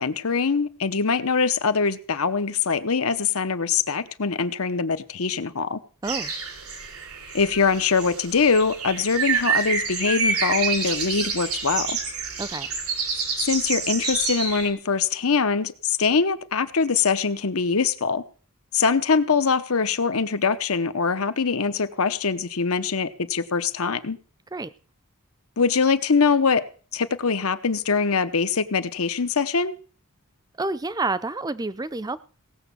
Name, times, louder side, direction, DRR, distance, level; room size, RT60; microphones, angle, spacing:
voice 1, 0.0-5.8 7.3-12.0 13.4-18.2 18.7-24.2 25.6-26.6 26.9-29.8, left 5 dB, 70° left, 11 dB, 0.9 m, -23 dB
voice 2, 6.0-6.3 12.4-12.7 24.5-24.7 30.6-32.2, right 3 dB, 15° right, 15 dB, 0.5 m, -28 dB
sound 1, 6.0-14.7, right 5 dB, 80° right, 3.1 m, -28 dB
17.0 x 7.1 x 6.9 m, 0.41 s
head